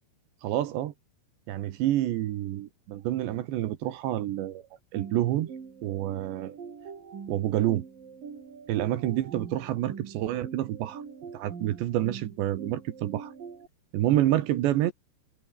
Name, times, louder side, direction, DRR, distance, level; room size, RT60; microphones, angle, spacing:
voice 1, 0.4-0.9 1.5-4.6 4.9-5.5 5.8-6.6 7.3-7.8 8.7-11.0 11.3-13.3 13.9-14.9, right 13 dB, 70° right, 3.2 m, -28 dB
sound 1, 4.9-13.7, right 6 dB, 45° right, 5.4 m, -43 dB
omnidirectional pair, 5.9 m